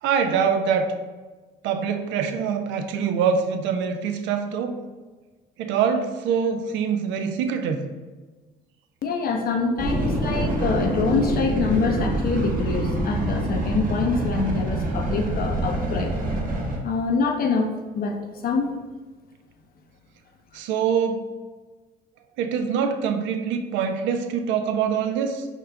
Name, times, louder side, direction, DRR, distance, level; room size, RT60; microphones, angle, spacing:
voice 1, 0.0-0.9 1.6-4.8 5.6-7.8 20.5-21.3 22.4-25.5, right 6 dB, 75° right, 7 dB, 0.5 m, -24 dB
voice 2, 9.0-16.1 16.8-18.2 18.4-18.7, left 4 dB, 50° left, 4 dB, 0.6 m, -25 dB
sound 1, 9.8-16.8, right 1 dB, 45° right, 1.1 m, -25 dB
4.6 x 2.4 x 3.3 m, 1.3 s
supercardioid pair, 75°, 19 cm